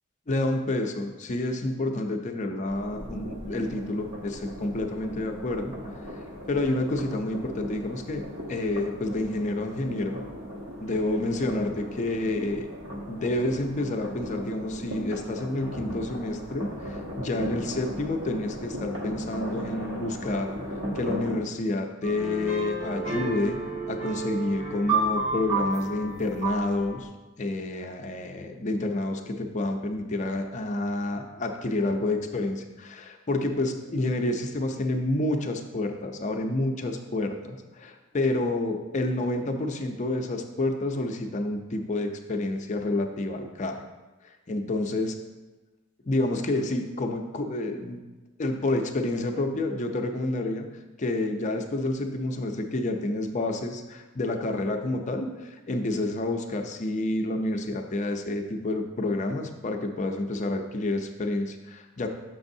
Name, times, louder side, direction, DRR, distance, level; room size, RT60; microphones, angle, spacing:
voice 1, 0.3-5.8 6.5-10.2 10.8-12.7 13.1-20.6 20.9-23.6 23.9-27.1 27.4-43.8 44.2-45.2 46.0-48.0 48.4-50.7 51.0-62.1, left 2 dB, 35° left, 4 dB, 0.5 m, -29 dB
sound 1, 2.7-21.4, equal, 60° right, 1.1 m, -37 dB
sound 2, 22.0-27.0, right 3 dB, 85° right, 1.3 m, -30 dB
7.8 x 6.0 x 2.7 m, 1.2 s
head